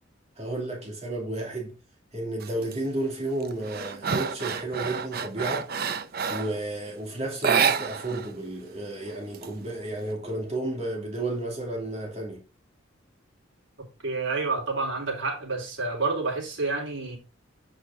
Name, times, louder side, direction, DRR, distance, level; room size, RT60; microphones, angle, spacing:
voice 1, 0.4-1.8 2.1-5.7 6.3-12.4, right 2 dB, 35° right, 2.5 m, -32 dB
sound 1, 2.4-2.8 3.2-6.6 7.3-8.3 8.6-8.7 9.1-10.0, right 6 dB, 50° right, 0.6 m, -28 dB
voice 2, 14.0-17.2, right 3 dB, 80° right, 3.9 m, -29 dB
8.1 x 6.0 x 3.9 m
head